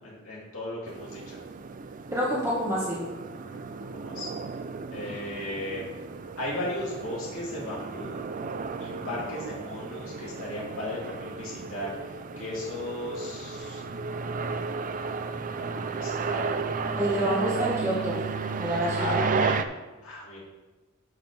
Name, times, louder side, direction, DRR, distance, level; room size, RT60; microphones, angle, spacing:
voice 1, 0.0-1.4 3.9-4.3 4.9-5.9 6.4-8.2 8.8-11.9 12.4-13.8 15.1-16.6 19.0-19.6 20.0-20.4, left 1 dB, 75° left, -5 dB, 2.8 m, -36 dB
sound 1, 0.8-19.6, right 4 dB, 40° right, 0.4 m, -33 dB
voice 2, 2.1-3.0 17.0-18.2 18.6-19.2, equal, 15° right, -6 dB, 1.6 m, -28 dB
12.0 x 6.1 x 3.4 m, 1.1 s
head